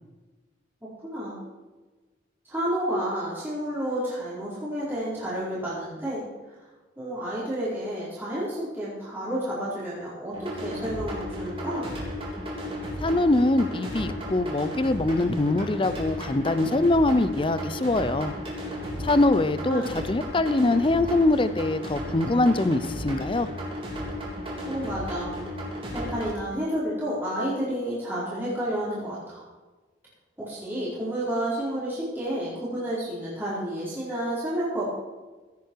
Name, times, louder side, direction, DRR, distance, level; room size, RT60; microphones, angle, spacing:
voice 1, 1.0-1.4 2.4-6.2 7.0-11.9 19.7-19.9 24.7-25.3 25.9-29.4 30.4-34.9, right 1 dB, 10° right, -10 dB, 4.3 m, -30 dB
sound 1, 10.3-26.3, equal, 30° right, 3.5 m, -34 dB
voice 2, 13.0-18.3 19.0-23.5, left 2 dB, 30° left, 13 dB, 0.6 m, -23 dB
16.5 x 9.6 x 4.7 m, 1.2 s
head